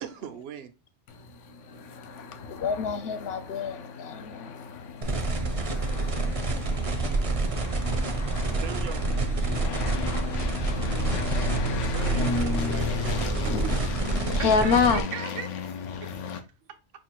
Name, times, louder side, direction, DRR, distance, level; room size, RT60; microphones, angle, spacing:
voice 1, 0.0-0.7 6.0-6.1 8.6-9.0 11.9-13.4, right 8 dB, 65° right, 0.8 m, -40 dB
sound 1, 1.1-16.4, left 4 dB, 85° left, 1.0 m, -35 dB
voice 2, 2.5-8.6 9.7-11.9 14.3-15.1, left 6 dB, 65° left, 0.7 m, -31 dB
sound 2, 5.0-15.0, right 3 dB, 40° right, 0.6 m, -28 dB
voice 3, 13.4-13.9 14.2-15.5 16.0-16.4, right 8 dB, 90° right, 1.1 m, -38 dB
5.4 x 2.4 x 2.9 m
omnidirectional pair, 1.2 m